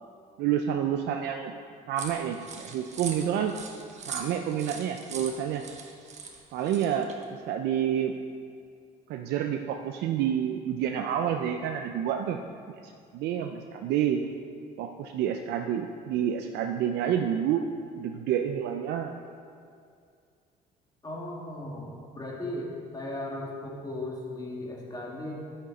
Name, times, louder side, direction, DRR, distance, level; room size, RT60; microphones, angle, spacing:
voice 1, 0.4-1.5 1.9-3.6 4.1-5.6 6.5-7.1 7.5-8.1 9.1-12.4 12.8-14.2 14.8-17.6 17.9-19.1, right 9 dB, 80° right, 5 dB, 0.6 m, -29 dB
sound 1, 2.0-7.2, right 5 dB, 40° right, 1.3 m, -41 dB
voice 2, 21.0-21.9 22.1-25.3, left 1 dB, 25° left, -3 dB, 2.4 m, -36 dB
10.5 x 9.1 x 4.2 m, 2.3 s
cardioid pair, 110°, 17 cm